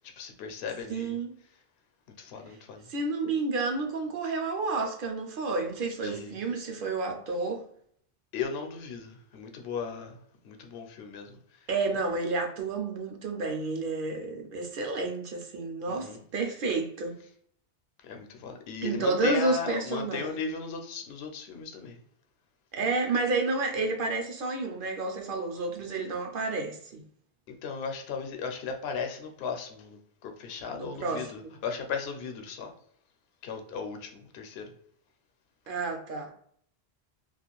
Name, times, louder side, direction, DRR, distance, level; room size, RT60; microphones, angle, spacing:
voice 1, 0.2-1.2 2.2-2.8 6.0-6.3 8.3-10.2 10.4-11.4 15.9-16.2 18.0-22.0 27.6-32.7 33.4-34.7, left 5 dB, 75° left, 0.8 m, -36 dB
voice 2, 0.9-1.3 2.9-7.6 11.7-17.2 18.8-20.4 22.7-27.0 30.8-31.6 35.7-36.3, right 3 dB, 65° right, 0.7 m, -30 dB
2.4 x 2.4 x 2.9 m
omnidirectional pair, 1.1 m